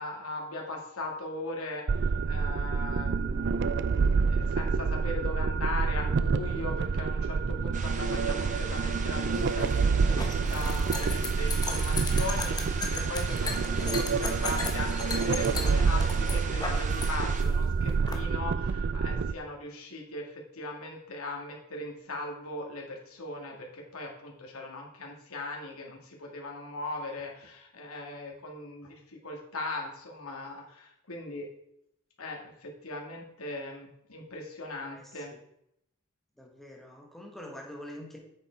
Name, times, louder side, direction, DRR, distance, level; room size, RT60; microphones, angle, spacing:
voice 1, 0.0-31.5 32.2-35.3, left 2 dB, 80° left, -1 dB, 2.3 m, -39 dB
sound 1, 1.9-19.3, right 5 dB, 50° right, 0.4 m, -28 dB
sound 2, 7.7-17.4, right 4 dB, 35° right, 0.9 m, -40 dB
sound 3, 9.4-17.1 17.3-18.2, left 4 dB, 20° left, 1.2 m, -36 dB
voice 2, 36.4-38.2, left 1 dB, ahead, -1 dB, 1.9 m, -45 dB
8.6 x 7.1 x 4.7 m, 0.76 s
head